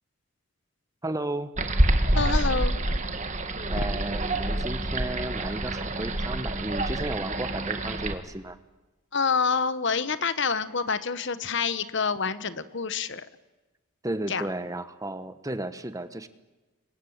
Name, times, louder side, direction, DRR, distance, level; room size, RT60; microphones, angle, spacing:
voice 1, 1.0-1.5 3.7-8.6 14.0-16.3, right 1 dB, 15° right, 11 dB, 1.2 m, -33 dB
sound 1, 1.6-8.1, right 1 dB, 35° right, 2.0 m, -27 dB
voice 2, 2.1-2.9 9.1-13.3 14.3-14.4, left 5 dB, 60° left, 13 dB, 1.2 m, -27 dB
28.5 x 24.0 x 8.8 m, 1.1 s
head